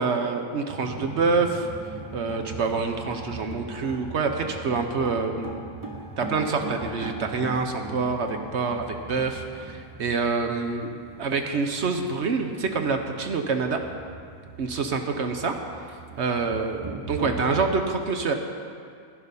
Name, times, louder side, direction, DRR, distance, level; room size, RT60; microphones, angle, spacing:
voice 1, 0.0-1.7 2.1-5.7 6.2-13.8 14.6-15.6 15.9-18.3, right 4 dB, 55° right, 5 dB, 0.9 m, -26 dB
sound 1, 0.8-17.8, right 2 dB, 25° right, 0.5 m, -39 dB
11.0 x 10.5 x 5.4 m, 2.2 s
omnidirectional pair, 1.7 m